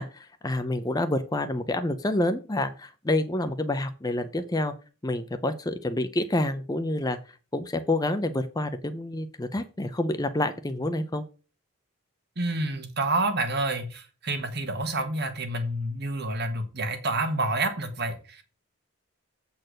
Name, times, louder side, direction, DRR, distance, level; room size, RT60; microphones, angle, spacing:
voice 1, 0.0-4.7 5.0-7.2 7.5-11.2, left 1 dB, 15° left, 0.5 m, -28 dB
voice 2, 12.4-18.4, right 2 dB, 50° right, 1.4 m, -28 dB
8.1 x 4.4 x 6.3 m
head